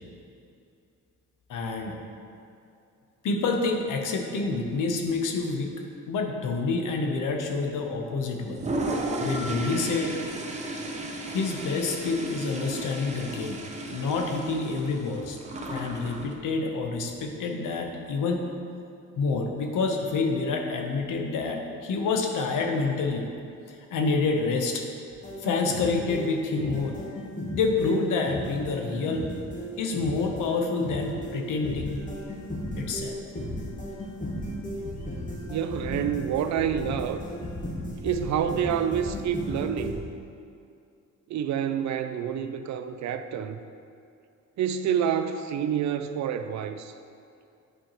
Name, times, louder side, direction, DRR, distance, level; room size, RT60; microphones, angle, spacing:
voice 1, 1.5-2.0 3.2-5.7 6.1-8.6 9.2-10.2 11.2-13.6 13.9-15.4 15.7-18.4 19.2-23.3 23.7-24.8 25.4-27.0 27.5-29.3 29.8-32.0 32.8-33.2, left 4 dB, 75° left, 2 dB, 0.9 m, -28 dB
Toilet flush, 8.5-16.3, right 2 dB, 20° right, 0.7 m, -34 dB
sound 1, 25.1-39.9, equal, 25° left, 1.1 m, -35 dB
voice 2, 35.5-37.2 38.0-40.0 41.3-43.6 44.6-46.9, right 8 dB, 60° right, 9 dB, 0.4 m, -28 dB
9.1 x 4.5 x 3.0 m, 2.5 s
cardioid pair, 110°, 32 cm